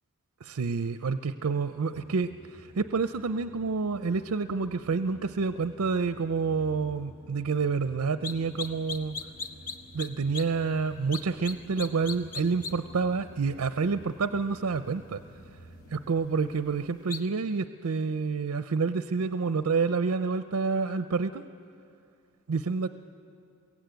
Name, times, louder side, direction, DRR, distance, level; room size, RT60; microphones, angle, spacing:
voice 1, 0.4-9.2 9.9-15.2 15.9-21.4 22.5-22.9, right 4 dB, 75° right, 11 dB, 0.5 m, -28 dB
sound 1, 1.9-16.1, right 1 dB, 75° left, 4.9 m, -52 dB
sound 2, 8.2-8.3 8.6-10.1 10.3-10.4 11.1-11.5 11.8-12.7 17.1-17.2, left 4 dB, 40° left, 1.0 m, -35 dB
22.5 x 16.0 x 9.2 m, 2.6 s
head